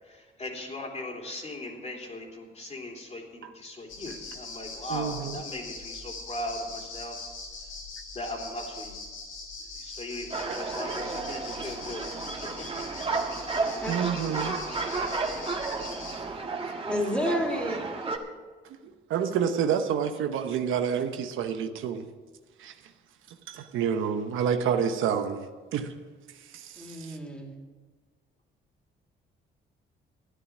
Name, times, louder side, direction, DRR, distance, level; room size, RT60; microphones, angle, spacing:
voice 1, 0.0-7.2 8.1-9.0 9.8-12.1 13.4-13.6 24.1-24.2, left 1 dB, 35° left, 0 dB, 3.2 m, -38 dB
sound 1, 3.9-16.2, left 3 dB, 85° left, 4.1 m, -41 dB
voice 2, 4.9-5.4 13.9-14.6 18.6-22.0 22.6-22.7 23.3-25.4 25.7-25.9 26.5-27.2, right 7 dB, 85° right, 7 dB, 1.0 m, -29 dB
sound 2, 10.3-18.2, right 4 dB, 30° right, 1.7 m, -32 dB
voice 3, 16.9-17.8 26.8-27.5, equal, 5° left, 1 dB, 3.0 m, -30 dB
13.0 x 10.0 x 6.2 m, 1.4 s
cardioid pair, 90°, 20 cm